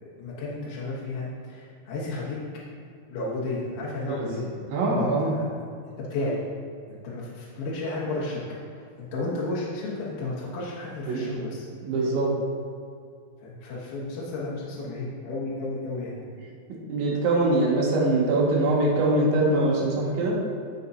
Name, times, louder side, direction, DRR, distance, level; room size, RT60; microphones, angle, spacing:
voice 1, 0.1-2.4 3.1-4.5 4.9-5.5 6.0-6.4 6.9-11.7 13.4-16.2, left 2 dB, 65° left, -6 dB, 2.7 m, -33 dB
voice 2, 4.0-5.4 11.1-11.3 11.8-12.3 16.9-20.4, right 2 dB, 90° right, -5 dB, 4.1 m, -23 dB
15.0 x 5.4 x 2.8 m, 2.3 s
omnidirectional pair, 5.2 m